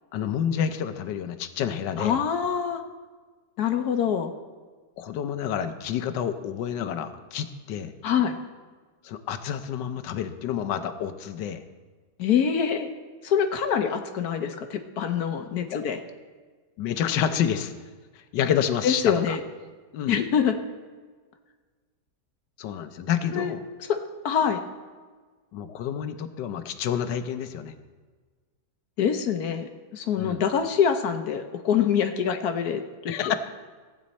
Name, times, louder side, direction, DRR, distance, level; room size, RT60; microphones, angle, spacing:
voice 1, 0.1-2.2 5.0-7.9 9.0-11.6 15.7-15.8 16.8-17.7 18.1-19.4 19.9-20.2 22.6-23.6 25.5-27.7 30.2-30.4 32.3-32.4 33.1-33.3, left 9 dB, 85° left, 9 dB, 1.4 m, -29 dB
voice 2, 2.0-2.8 3.6-4.3 8.0-8.4 12.2-12.9 13.2-16.0 18.8-19.4 20.1-20.5 23.3-23.5 23.9-24.0 24.2-24.6 29.0-33.3, left 7 dB, 65° left, 7 dB, 1.3 m, -25 dB
15.5 x 8.7 x 4.2 m, 1.4 s
omnidirectional pair, 1.8 m